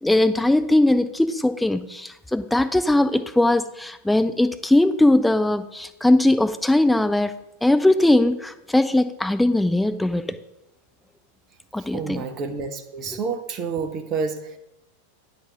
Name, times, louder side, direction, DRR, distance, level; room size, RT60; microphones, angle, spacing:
voice 1, 0.0-7.3 7.6-10.4 11.7-12.2, left 1 dB, 5° left, 10 dB, 0.5 m, -20 dB
voice 2, 11.8-14.6, right 5 dB, 35° right, 7 dB, 0.9 m, -29 dB
9.4 x 4.2 x 5.7 m, 0.86 s
figure-of-eight pair, 90°, 0 cm